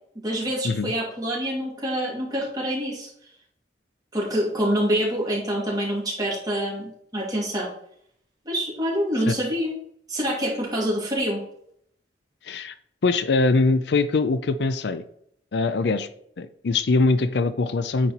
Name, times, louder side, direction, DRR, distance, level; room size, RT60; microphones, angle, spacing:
voice 1, 0.2-3.1 4.1-7.7 8.4-9.7 10.1-11.4, equal, 20° right, -4 dB, 2.6 m, -26 dB
voice 2, 12.4-12.7 13.0-15.0 15.5-16.1 16.4-18.1, left 3 dB, 70° left, 12 dB, 0.5 m, -22 dB
9.2 x 4.2 x 4.3 m, 0.68 s
head